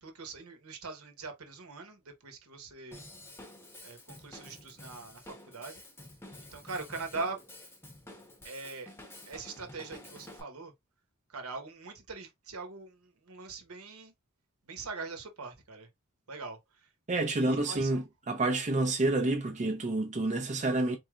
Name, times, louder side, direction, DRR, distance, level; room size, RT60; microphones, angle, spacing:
voice 1, 0.0-3.0 3.8-5.8 6.5-7.4 8.4-8.9 9.3-10.7 11.3-14.1 14.7-15.9 16.3-16.9 17.2-18.0, right 4 dB, 75° right, 1.1 m, -42 dB
Drum kit / Drum, 2.9-10.4, left 1 dB, 10° left, 0.9 m, -50 dB
voice 2, 17.1-21.0, right 2 dB, 35° right, 0.6 m, -29 dB
4.2 x 3.2 x 2.4 m
head